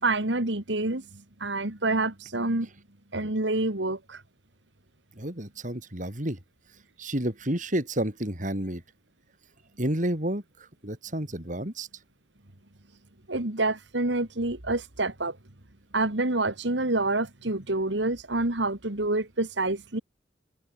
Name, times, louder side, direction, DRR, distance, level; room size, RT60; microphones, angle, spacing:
voice 1, 0.0-1.0 1.4-2.7 3.1-4.2 13.3-15.4 15.9-20.0, right 2 dB, 75° right, 2.6 m, -27 dB
voice 2, 5.2-6.4 7.0-8.8 9.8-11.9, right 1 dB, 45° right, 5.0 m, -30 dB
head